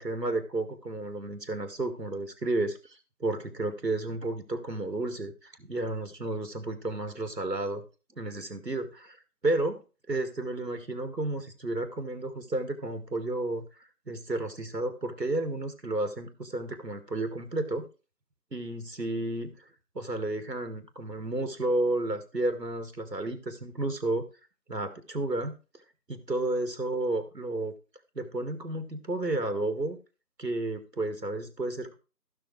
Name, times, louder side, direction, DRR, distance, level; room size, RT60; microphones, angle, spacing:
voice 1, 0.0-2.8 3.2-7.8 8.2-9.2 9.4-9.8 10.1-13.7 14.1-17.9 18.5-19.5 20.0-24.2 24.7-25.6 26.1-27.7 28.2-30.0 30.4-32.0, right 2 dB, 80° right, 8 dB, 1.9 m, -32 dB
15.5 x 6.0 x 3.3 m, 0.33 s
figure-of-eight pair, 170°, 49 cm